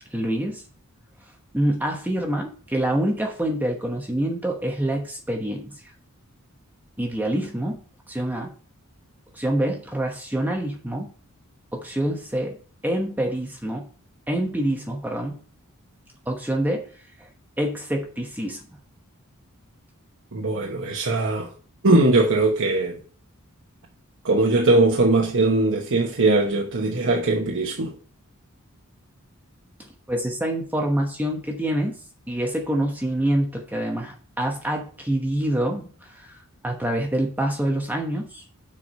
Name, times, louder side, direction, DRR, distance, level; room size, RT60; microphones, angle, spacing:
voice 1, 0.1-0.6 1.5-5.8 7.0-8.5 9.3-11.1 11.7-12.6 12.8-13.9 14.3-15.4 16.3-16.9 17.2-17.3 17.6-18.6 30.1-32.0 32.3-36.4 36.6-38.4, right 1 dB, 10° right, 1.1 m, -26 dB
voice 2, 20.3-21.5 21.8-23.0 24.2-27.9, right 2 dB, 60° right, 1.1 m, -20 dB
7.4 x 4.7 x 5.5 m
head